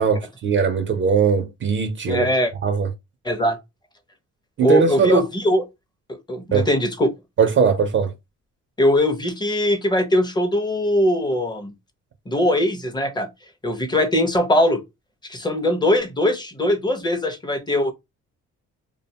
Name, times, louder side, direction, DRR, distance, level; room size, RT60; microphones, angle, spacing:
voice 1, 0.0-2.2 2.6-2.9 4.6-5.2 6.5-6.7 7.4-8.1, right 5 dB, 40° right, 0.4 m, -19 dB
voice 2, 2.1-2.5 3.2-3.6 4.6-5.6 6.3-7.1 8.8-11.7 12.3-13.3 13.6-14.8 15.3-17.9, left 1 dB, 15° left, 0.5 m, -20 dB
2.5 x 2.2 x 2.7 m
cardioid pair, 90°, 30 cm